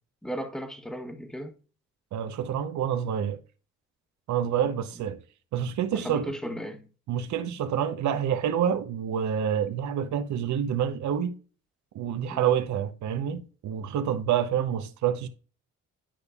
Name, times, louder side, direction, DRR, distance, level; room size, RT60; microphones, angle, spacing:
voice 1, 0.2-1.5 6.0-6.8 12.3-12.4, equal, ahead, 1.1 m, -35 dB
voice 2, 2.1-3.4 4.3-5.2 5.5-6.4 7.1-11.3 11.9-15.3, right 9 dB, 70° right, 0.9 m, -27 dB
10.0 x 5.2 x 2.4 m
cardioid pair, 90°, 30 cm